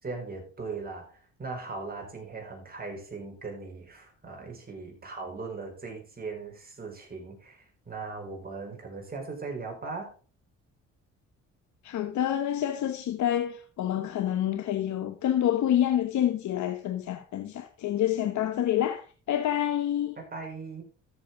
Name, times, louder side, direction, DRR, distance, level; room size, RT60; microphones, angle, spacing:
voice 1, 0.0-10.1 20.2-20.8, right 4 dB, 30° right, 5.0 m, -39 dB
voice 2, 11.8-20.2, left 11 dB, 70° left, 1.0 m, -27 dB
13.5 x 7.3 x 3.6 m
cardioid pair, 90°, 30 cm